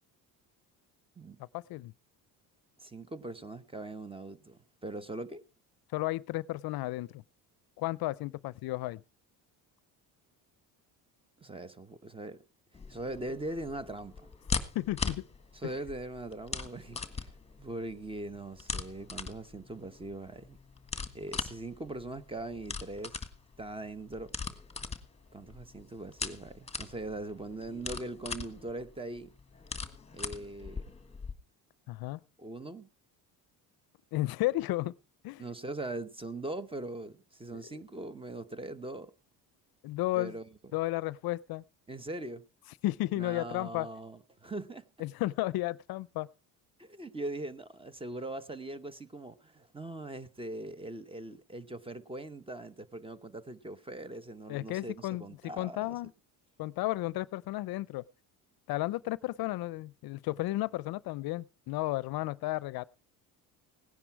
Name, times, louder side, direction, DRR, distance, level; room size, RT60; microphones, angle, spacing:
voice 1, 1.4-1.9 5.9-7.2 7.8-9.0 14.7-15.3 15.6-15.7 31.9-32.2 34.1-35.0 35.2-35.5 37.5-37.6 39.8-40.3 40.7-41.6 42.8-43.9 45.0-46.3 54.5-56.1 56.6-58.0 58.7-62.8, left 17 dB, 65° left, 0.6 m, -33 dB
voice 2, 2.8-5.4 11.4-12.4 12.9-14.3 15.5-20.6 21.1-23.2 23.6-24.3 25.3-29.3 30.1-30.8 32.4-32.9 35.4-39.1 40.1-40.4 41.9-42.4 43.2-44.9 46.8-56.0, right 2 dB, 15° right, 0.9 m, -41 dB
sound 1, 12.7-31.3, left 5 dB, 15° left, 1.5 m, -40 dB
17.5 x 10.0 x 4.6 m
cardioid pair, 100°, 41 cm